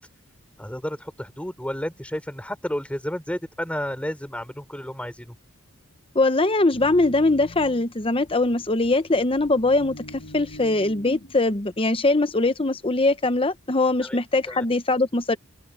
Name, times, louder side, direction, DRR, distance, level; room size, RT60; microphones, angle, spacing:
voice 1, 0.6-5.4 14.0-14.2 14.5-14.7, equal, 5° left, 3.7 m, -31 dB
voice 2, 6.1-15.4, left 2 dB, 25° left, 1.0 m, -22 dB
sound 1, 6.7-11.7, left 1 dB, 50° left, 1.6 m, -44 dB
open air
head